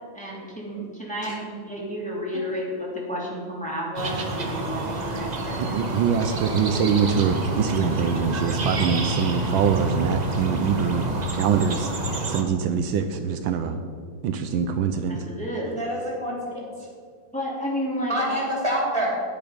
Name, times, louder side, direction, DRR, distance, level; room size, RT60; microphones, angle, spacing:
voice 1, 0.1-5.9 15.0-15.8 17.3-18.4, equal, 5° left, -5 dB, 2.7 m, -31 dB
sound 1, 4.0-12.4, right 2 dB, 35° right, 0.7 m, -28 dB
voice 2, 5.6-11.0 11.3-11.9 12.3-13.8 14.2-15.2, right 6 dB, 80° right, 7 dB, 1.4 m, -24 dB
voice 3, 15.6-16.6 18.1-19.1, right 1 dB, 15° right, -3 dB, 3.1 m, -27 dB
10.5 x 10.0 x 5.2 m, 2.2 s
omnidirectional pair, 2.2 m